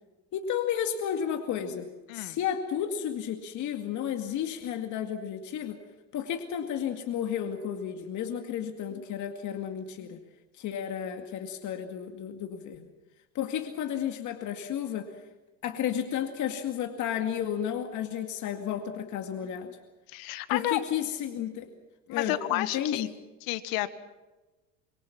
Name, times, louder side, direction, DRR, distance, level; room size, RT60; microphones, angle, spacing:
voice 1, 0.3-5.8 6.1-10.2 10.6-12.9 13.3-15.1 15.6-19.8 20.5-21.7 22.1-23.1, left 9 dB, 50° left, 5 dB, 2.2 m, -32 dB
voice 2, 20.1-20.8 22.1-23.1 23.4-23.9, left 16 dB, 65° left, 12 dB, 1.7 m, -31 dB
26.5 x 22.5 x 6.0 m, 1.1 s
supercardioid pair, 105°, 37 cm